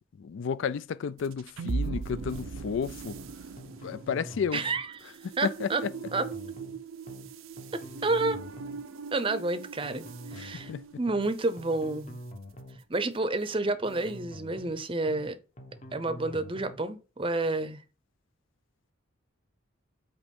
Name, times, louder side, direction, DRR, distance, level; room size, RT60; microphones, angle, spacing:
voice 1, 0.2-3.2 3.8-4.7 5.2-5.9 10.3-10.9, left 6 dB, 70° left, 0.3 m, -32 dB
sound 1, 1.2-11.7, right 4 dB, 85° right, 0.6 m, -40 dB
sound 2, 1.8-2.8 3.1-3.3 3.6-4.8 5.8-6.8 7.1-7.3 7.6-8.8 9.8-10.8 11.1-11.3 11.6-12.8 13.8-14.8 15.1-15.3 15.6-16.8, equal, 35° left, 0.9 m, -45 dB
voice 2, 4.5-5.8 6.1-6.3 7.7-8.4 9.1-10.7 11.0-12.2 12.9-15.4 15.9-17.8, right 2 dB, 25° right, 0.6 m, -30 dB
8.4 x 3.0 x 5.3 m
head